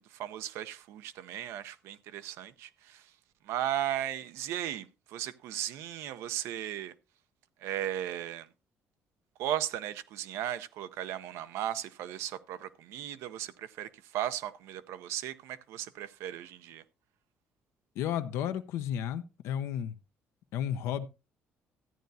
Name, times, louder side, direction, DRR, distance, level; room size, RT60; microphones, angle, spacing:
voice 1, 0.0-3.1 3.4-6.9 7.6-8.5 9.4-16.8, right 11 dB, 85° right, 0.6 m, -36 dB
voice 2, 18.0-19.9 20.5-21.1, left 9 dB, 85° left, 0.7 m, -33 dB
13.5 x 9.2 x 2.7 m
cardioid pair, 105°, 5 cm